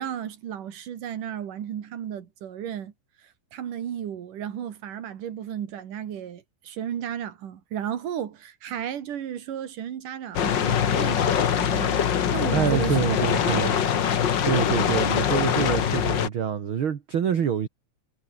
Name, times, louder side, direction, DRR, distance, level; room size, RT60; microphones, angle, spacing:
voice 1, 0.0-2.9 3.2-13.2 13.5-14.0, right 9 dB, 90° right, 3.7 m, -34 dB
sound 1, 10.3-16.3, left 8 dB, 50° left, 1.5 m, -23 dB
voice 2, 12.5-13.7 14.4-17.7, right 8 dB, 45° right, 2.2 m, -26 dB
omnidirectional pair, 3.6 m